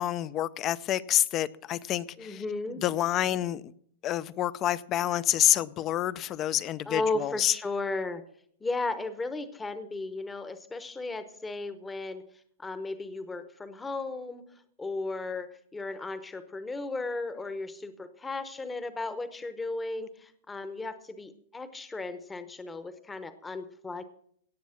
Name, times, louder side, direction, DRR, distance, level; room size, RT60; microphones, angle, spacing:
voice 1, 0.0-2.4 2.8-3.6 4.0-7.5, left 12 dB, 30° left, 0.5 m, -28 dB
voice 2, 2.2-2.8 6.9-8.2 8.6-12.2 12.6-14.4 14.8-24.0, left 3 dB, 10° left, 0.9 m, -35 dB
17.5 x 7.2 x 5.7 m
hypercardioid pair, 140°, 0 cm